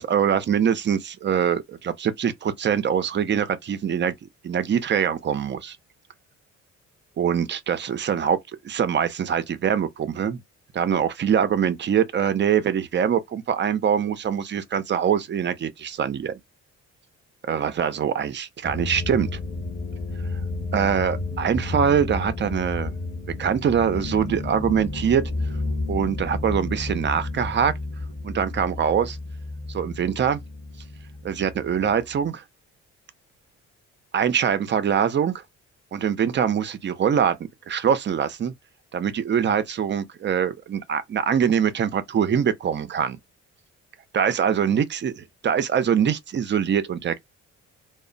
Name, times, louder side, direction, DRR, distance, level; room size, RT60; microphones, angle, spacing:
voice 1, 0.0-4.1 4.4-5.8 7.2-8.4 8.6-10.4 10.7-16.4 17.5-19.4 20.7-22.9 23.4-25.2 25.9-27.7 28.2-29.2 29.7-30.4 31.2-32.4 34.1-35.4 35.9-38.5 38.9-43.2 44.1-47.2, right 8 dB, 40° right, 0.5 m, -23 dB
sound 1, 18.6-32.3, left 2 dB, 20° left, 0.7 m, -31 dB
2.0 x 2.0 x 3.7 m
cardioid pair, 90°, 30 cm